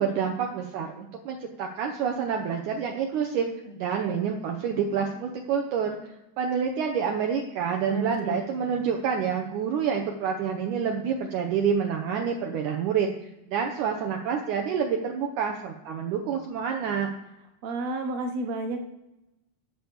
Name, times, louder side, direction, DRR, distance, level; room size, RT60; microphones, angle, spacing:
voice 1, 0.0-3.5 3.8-6.0 6.4-13.1 13.5-17.1, right 7 dB, 75° right, 2 dB, 2.1 m, -28 dB
voice 2, 3.6-4.3 7.8-8.4 17.6-18.8, right 2 dB, 60° right, 4 dB, 2.1 m, -32 dB
8.0 x 8.0 x 6.9 m, 0.94 s
omnidirectional pair, 3.8 m